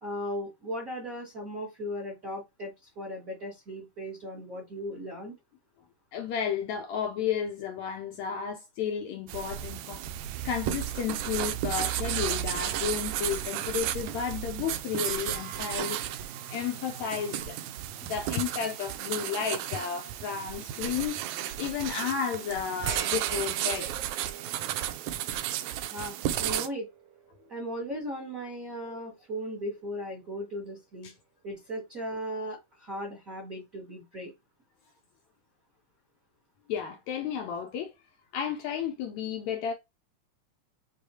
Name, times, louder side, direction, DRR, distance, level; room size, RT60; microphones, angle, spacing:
voice 1, 0.0-5.3 25.9-26.9 27.5-31.1 31.4-34.3, equal, 40° right, 1.2 m, -37 dB
voice 2, 6.1-10.0 10.4-16.0 16.5-17.6 18.0-21.2 21.6-24.1 28.8-29.0 31.0-31.1 36.7-37.9 38.3-39.7, left 8 dB, 80° left, 1.6 m, -32 dB
sound 1, 9.3-26.7, right 12 dB, 90° right, 1.6 m, -33 dB
sound 2, 15.0-18.6 19.1-19.3 22.9-29.3, right 8 dB, 70° right, 2.2 m, -44 dB
6.4 x 2.5 x 2.7 m
omnidirectional pair, 3.8 m